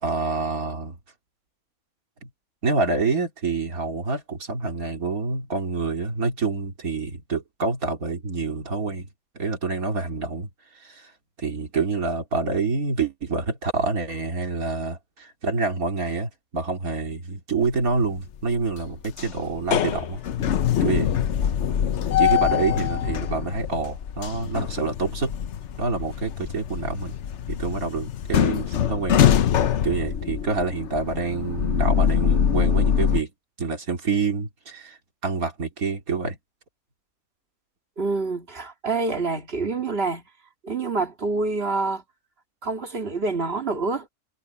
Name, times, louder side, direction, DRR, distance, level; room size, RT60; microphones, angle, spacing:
voice 1, 0.0-1.0 2.2-2.3 2.6-9.1 9.3-10.5 10.8-11.1 11.4-20.2 20.8-21.1 22.2-25.3 25.8-27.1 27.5-29.4 29.8-33.3 33.6-36.4, right 4 dB, 75° right, 3.1 m, -27 dB
sound 1, 17.7-18.2 18.6-33.2, left 9 dB, 60° left, 1.0 m, -24 dB
voice 2, 38.0-40.2 40.6-42.0 42.6-44.1, right 3 dB, 45° right, 2.2 m, -26 dB
omnidirectional pair, 1.5 m